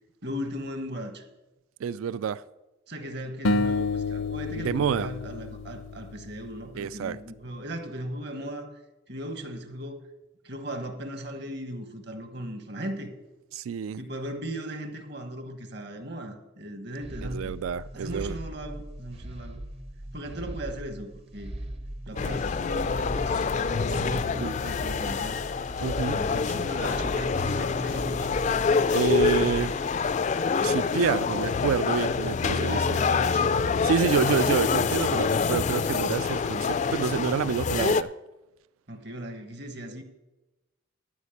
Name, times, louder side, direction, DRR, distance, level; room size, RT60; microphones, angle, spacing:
voice 1, 0.2-1.2 2.9-8.7 9.1-10.0 10.4-13.1 14.0-17.6 17.9-19.6 20.1-21.5 22.1-25.4 26.2-28.3 30.4-30.8 32.4-33.7 34.2-34.5 38.9-40.0, equal, 55° right, 1.3 m, -37 dB
voice 2, 1.8-2.4 4.6-5.1 6.8-7.2 13.5-14.0 17.2-18.3 24.4-24.5 25.8-26.2 28.9-29.7 30.6-33.0 33.8-38.1, right 7 dB, 85° right, 0.3 m, -28 dB
sound 1, 3.4-6.7, left 3 dB, 75° left, 0.6 m, -29 dB
sound 2, 17.0-30.1, right 1 dB, 30° right, 0.6 m, -40 dB
sound 3, 22.2-38.0, left 5 dB, 35° left, 0.3 m, -26 dB
12.5 x 5.1 x 8.3 m
head